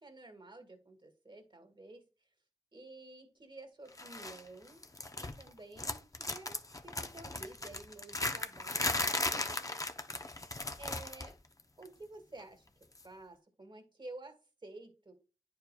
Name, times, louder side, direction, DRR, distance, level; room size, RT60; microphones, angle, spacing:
voice 1, 0.0-2.0 2.7-4.8 5.2-9.6 10.8-11.4 11.8-12.7 13.0-15.1, right 2 dB, 40° right, 5 dB, 1.7 m, -51 dB
sound 1, 4.0-4.4 4.7-5.5 5.8-11.3 11.6-11.9 12.9-13.0, left 2 dB, 30° left, 0.6 m, -37 dB
10.5 x 4.7 x 2.2 m, 0.33 s
wide cardioid pair, 70°, 12 cm